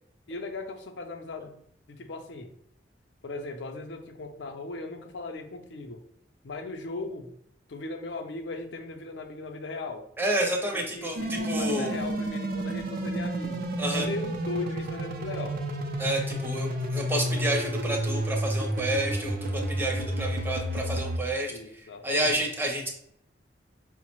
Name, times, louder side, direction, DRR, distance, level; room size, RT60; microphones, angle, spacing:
voice 1, 0.3-1.6 1.9-2.5 3.2-6.0 6.4-7.3 7.7-10.0 10.7-13.7 13.9-15.6 21.5-22.3, left 3 dB, 75° left, 5 dB, 0.5 m, -38 dB
voice 2, 10.2-11.9 13.8-14.1 16.0-22.9, right 1 dB, 10° right, 1 dB, 0.6 m, -30 dB
sound 1, 11.2-21.2, right 1 dB, 55° right, 0.5 m, -31 dB
4.7 x 2.1 x 2.9 m, 0.70 s
head